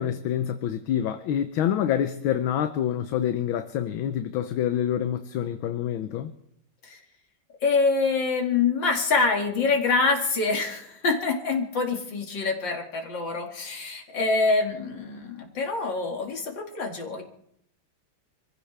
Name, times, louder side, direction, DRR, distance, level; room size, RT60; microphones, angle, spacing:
voice 1, 0.0-6.3, left 10 dB, 70° left, 1.5 m, -27 dB
voice 2, 7.6-17.2, left 4 dB, 55° left, 2.9 m, -25 dB
27.0 x 15.0 x 3.3 m
omnidirectional pair, 2.4 m